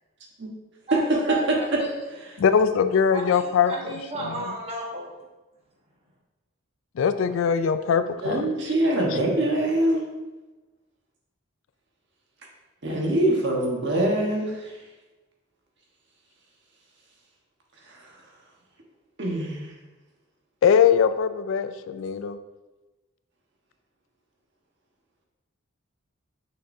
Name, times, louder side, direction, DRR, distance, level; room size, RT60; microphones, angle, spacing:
voice 1, 0.9-2.1 3.1-5.1, right 2 dB, 30° right, -3 dB, 1.1 m, -33 dB
voice 2, 2.4-3.7 7.0-8.5 20.6-22.4, left 7 dB, 65° left, 11 dB, 0.3 m, -21 dB
voice 3, 8.2-10.0 12.8-14.8 17.9-18.1 19.2-19.7, right 1 dB, 55° right, -1 dB, 1.2 m, -24 dB
6.4 x 5.9 x 2.7 m, 1.1 s
head